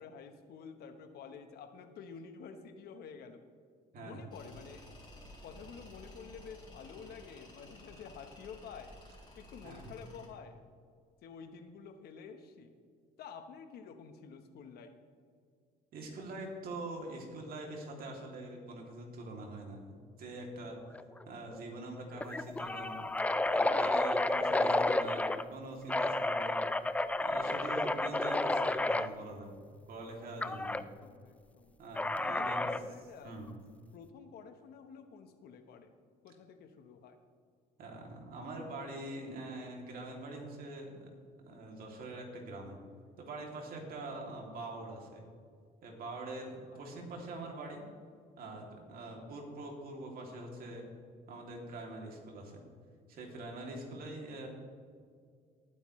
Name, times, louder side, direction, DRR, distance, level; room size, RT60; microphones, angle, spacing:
voice 1, 0.0-3.4 4.0-4.9 5.4-9.0 9.4-10.6 11.2-12.7 13.2-15.0 30.7-31.8 32.2-33.4 33.9-35.9 36.2-37.2 43.9-44.0 46.7-46.8 49.1-49.2 53.9-54.0, left 6 dB, 70° left, 7 dB, 1.2 m, -50 dB
voice 2, 3.9-4.4 9.6-10.0 15.9-19.9 20.2-20.8 21.3-23.0 23.5-26.6 27.2-29.6 29.9-30.8 31.8-32.7 33.2-33.6 37.8-42.8 43.2-45.2 45.8-47.8 48.4-50.8 51.3-52.6 53.1-54.5, right 2 dB, 60° right, 0 dB, 2.9 m, -44 dB
Tools, 4.3-10.3, left 1 dB, 25° left, 3.5 m, -54 dB
sound 1, 20.9-21.2 21.5-21.6 22.2-25.4 25.9-29.1 30.4-30.8 32.0-32.9, left 2 dB, 10° left, 0.4 m, -31 dB
19.0 x 9.1 x 3.2 m, 2.1 s
cardioid pair, 110°, 17 cm